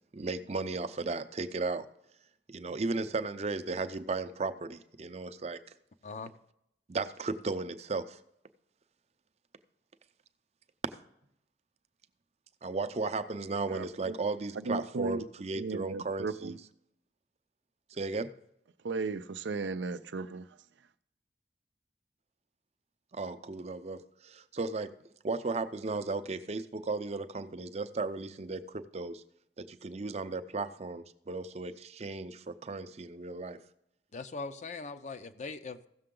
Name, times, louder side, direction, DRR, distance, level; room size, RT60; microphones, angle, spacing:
voice 1, 0.1-1.9 2.5-5.6 6.9-8.2 12.6-16.6 17.9-18.3 23.1-24.9 25.2-29.2 29.6-33.6, right 3 dB, 35° right, 0.5 m, -35 dB
voice 2, 13.7-14.1 14.6-15.3 15.6-16.5 18.8-20.5, right 3 dB, 85° right, 0.5 m, -35 dB
voice 3, 34.1-35.9, left 4 dB, 40° left, 0.5 m, -40 dB
15.5 x 6.7 x 3.8 m
head